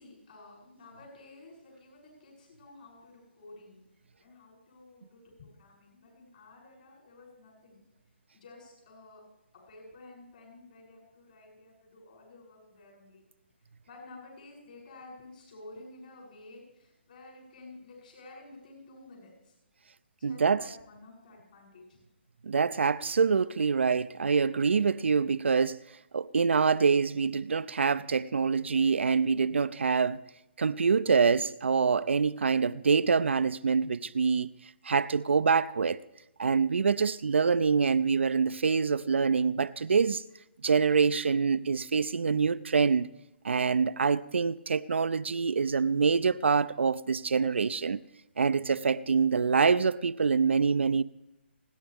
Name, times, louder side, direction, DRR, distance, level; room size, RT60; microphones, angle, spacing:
voice 1, 0.0-3.8 4.2-7.8 8.3-9.2 9.5-13.2 13.9-19.6 20.2-22.0, left 2 dB, 50° left, 7.5 m, -52 dB
voice 2, 20.2-20.6 22.4-25.8 26.1-30.2 30.6-34.5 34.8-36.0 36.4-40.2 40.6-43.1 43.4-48.0 48.4-51.0, right 5 dB, 75° right, 0.5 m, -25 dB
30.0 x 10.0 x 3.5 m
hypercardioid pair, 155°, 6 cm